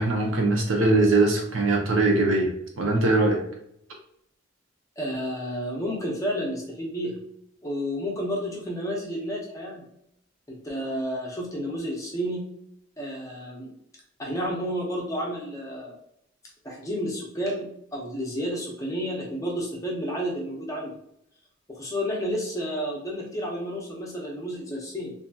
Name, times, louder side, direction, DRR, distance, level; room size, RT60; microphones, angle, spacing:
voice 1, 0.0-2.5 2.8-3.4, right 2 dB, 75° right, 1 dB, 0.7 m, -21 dB
voice 2, 5.0-7.2 7.6-9.8 10.5-12.4 13.0-13.7 14.2-15.9 16.6-20.9 21.7-25.1, equal, 15° left, -2 dB, 0.6 m, -31 dB
2.7 x 2.6 x 2.3 m, 0.73 s
head